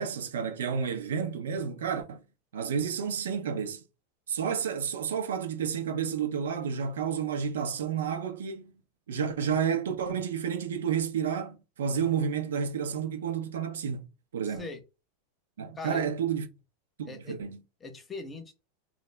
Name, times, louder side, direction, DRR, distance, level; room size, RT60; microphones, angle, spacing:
voice 1, 0.0-2.2 2.5-3.8 4.3-8.7 9.1-14.1 14.3-14.7 15.6-16.5 17.0-17.6, right 7 dB, 80° right, 0.5 m, -30 dB
voice 2, 14.5-14.8 15.8-16.1 17.1-17.4 17.8-18.5, left 3 dB, 20° left, 0.8 m, -41 dB
2.2 x 2.0 x 3.3 m
hypercardioid pair, 95°, 0 cm